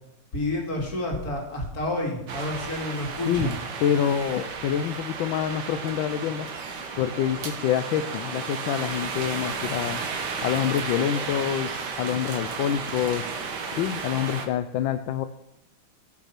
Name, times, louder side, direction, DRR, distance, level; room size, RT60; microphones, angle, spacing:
voice 1, 0.3-3.5, left 1 dB, 40° left, 0 dB, 2.9 m, -29 dB
sound 1, 2.3-14.5, right 5 dB, 55° right, 1.7 m, -33 dB
voice 2, 3.2-6.5 7.0-10.0 10.4-11.7 12.0-13.2 13.7-15.3, left 9 dB, 75° left, 9 dB, 1.3 m, -26 dB
16.0 x 6.2 x 5.8 m, 0.85 s
omnidirectional pair, 2.4 m